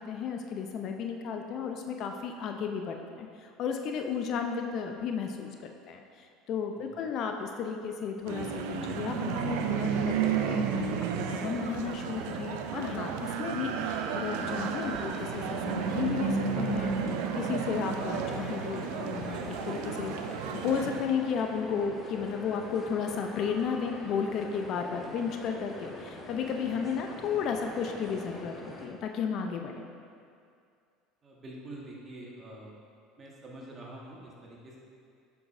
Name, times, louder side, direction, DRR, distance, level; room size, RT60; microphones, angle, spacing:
voice 1, 0.0-16.9 17.3-20.1 20.5-29.9, left 6 dB, 55° left, 4 dB, 0.5 m, -33 dB
sound 1, 8.3-21.0, right 6 dB, 70° right, 0.4 m, -32 dB
sound 2, 14.3-28.9, left 1 dB, 25° left, 1.1 m, -44 dB
voice 2, 31.2-32.7 33.2-34.8, right 1 dB, 35° right, -3 dB, 1.5 m, -46 dB
7.6 x 6.1 x 2.6 m, 2.3 s
hypercardioid pair, 75°, 0 cm